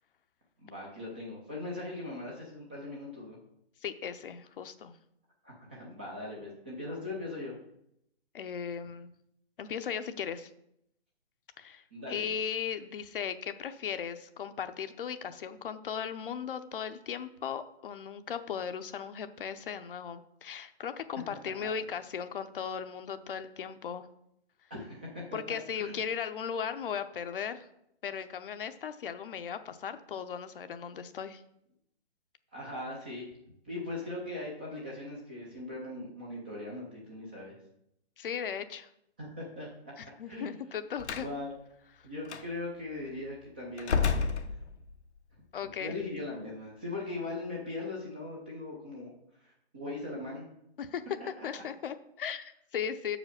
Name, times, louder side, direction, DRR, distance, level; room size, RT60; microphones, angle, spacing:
voice 1, 0.6-3.4 5.4-7.5 11.9-12.3 24.7-26.0 32.5-33.3 33.6-37.6 39.2-39.7 40.3-40.6 41.1-41.5 42.0-44.3 45.8-49.1 49.4-50.5 51.4-51.5, left 2 dB, 10° right, -3 dB, 0.4 m, -40 dB
voice 2, 3.8-4.9 8.3-9.1 9.6-10.5 11.6-24.1 25.3-27.7 28.0-31.4 38.2-38.9 40.0-41.3 45.5-46.0 50.8-51.0 51.4-53.2, left 7 dB, 55° left, 10 dB, 0.7 m, -37 dB
Slam, 41.0-41.3 42.3-42.4 43.8-45.1, left 5 dB, 90° left, 0.9 m, -30 dB
6.3 x 5.0 x 6.5 m, 0.77 s
hypercardioid pair, 150°, 32 cm